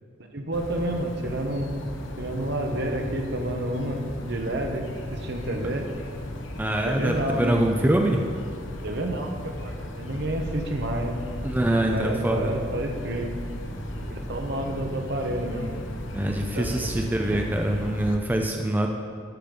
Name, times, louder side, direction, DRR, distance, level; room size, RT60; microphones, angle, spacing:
voice 1, 0.3-1.7 2.2-4.9 5.1-5.8 6.9-7.6 8.8-11.2 11.8-13.3 14.0-15.7 16.5-16.7, right 1 dB, 65° right, 3 dB, 1.1 m, -29 dB
sound 1, 0.5-18.2, left 1 dB, 80° left, 0.8 m, -36 dB
voice 2, 6.6-8.2 11.4-12.5 16.1-18.9, right 1 dB, 10° right, 2 dB, 0.5 m, -24 dB
sound 2, 10.1-15.7, right 1 dB, 80° right, 0.8 m, -41 dB
12.0 x 5.2 x 5.2 m, 2.2 s
head